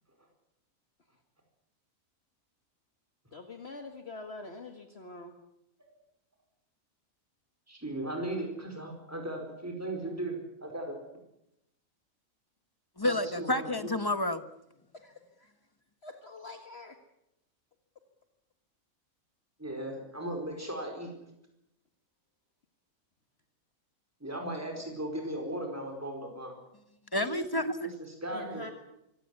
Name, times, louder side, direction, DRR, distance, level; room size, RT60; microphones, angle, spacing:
voice 1, 3.3-5.3 14.9-15.5 16.0-17.0 27.2-27.5 28.3-28.7, left 2 dB, 50° left, 5 dB, 2.0 m, -45 dB
voice 2, 7.7-11.0 13.0-13.7 19.6-21.1 24.2-26.5 27.8-28.7, right 1 dB, 10° right, 2 dB, 4.8 m, -37 dB
voice 3, 13.0-14.4 27.1-27.9, left 1 dB, 15° left, 11 dB, 1.2 m, -29 dB
25.0 x 16.0 x 9.6 m, 0.84 s
omnidirectional pair, 1.4 m